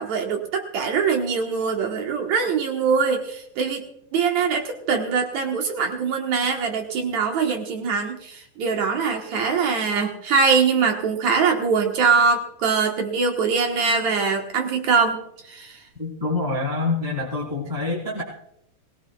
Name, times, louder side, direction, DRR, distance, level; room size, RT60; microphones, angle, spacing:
voice 1, 0.0-3.8 4.1-15.8, right 5 dB, 65° right, 3 dB, 2.3 m, -23 dB
voice 2, 16.0-18.2, left 3 dB, 5° right, -5 dB, 3.7 m, -26 dB
23.0 x 17.5 x 2.3 m, 0.75 s
omnidirectional pair, 3.8 m